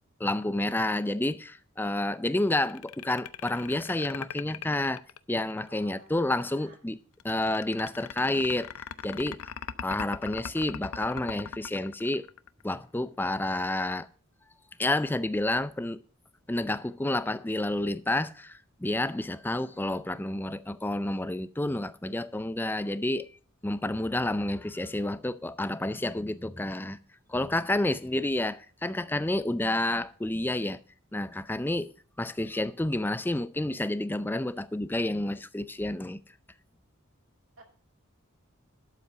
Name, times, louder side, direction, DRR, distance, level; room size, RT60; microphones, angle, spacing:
voice 1, 0.2-5.0 5.3-7.0 7.2-8.7 9.0-9.4 9.8-12.3 12.6-14.1 14.8-16.0 16.5-23.3 23.6-27.0 27.3-30.8 31.1-36.2, left 1 dB, 10° left, 0.4 m, -29 dB
sound 1, 2.6-5.8 7.2-12.7, left 8 dB, 90° left, 0.5 m, -39 dB
voice 2, 5.7-6.8 27.8-28.3 37.6-37.7, right 3 dB, 70° right, 2.3 m, -55 dB
12.0 x 5.6 x 6.7 m
head